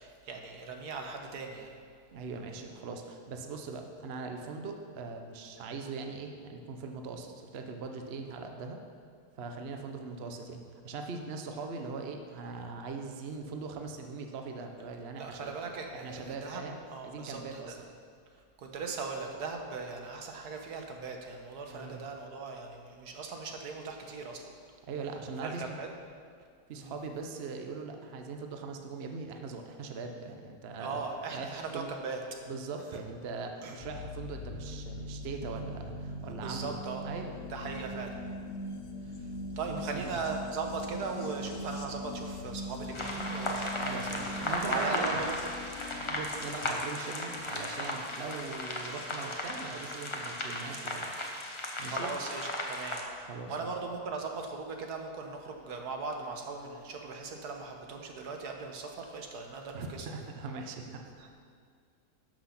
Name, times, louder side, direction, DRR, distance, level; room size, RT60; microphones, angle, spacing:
voice 1, 0.0-1.7 15.2-17.7 18.6-24.5 25.4-25.9 26.7-26.9 30.8-32.2 33.6-33.8 36.2-37.0 37.5-38.2 39.6-45.3 45.9-46.1 51.8-53.0 53.5-60.1 61.2-61.4, right 4 dB, 75° right, 3 dB, 1.6 m, -39 dB
voice 2, 2.1-8.8 9.4-15.5 15.9-16.8 17.0-17.8 21.7-22.0 24.9-25.8 26.7-31.0 31.3-31.9 32.4-37.4 39.7-40.2 43.8-45.2 46.0-51.1 51.8-52.1 53.2-53.7 59.7-61.1, right 4 dB, 50° right, 4 dB, 0.9 m, -41 dB
sound 1, 33.8-50.8 52.0-52.1, left 1 dB, 60° left, 1.2 m, -42 dB
sound 2, 42.9-53.0, left 1 dB, 25° left, 0.8 m, -36 dB
11.5 x 6.1 x 5.7 m, 2.1 s
omnidirectional pair, 1.7 m